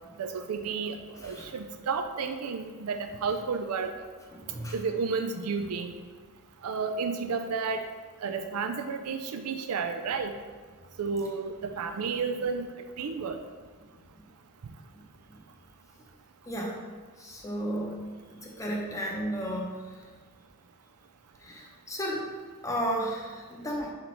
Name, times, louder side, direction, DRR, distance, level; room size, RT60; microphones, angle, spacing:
voice 1, 0.2-1.0 1.2-3.9 4.7-5.9 6.6-7.9 8.2-10.3 11.0-12.7 13.0-13.4, right 5 dB, 90° right, 7 dB, 0.4 m, -31 dB
voice 2, 4.3-4.7 16.5-16.8 17.2-18.0 18.3-19.7 21.4-22.3 22.6-23.9, equal, 15° left, -2 dB, 0.7 m, -33 dB
5.0 x 4.3 x 4.4 m, 1.5 s
head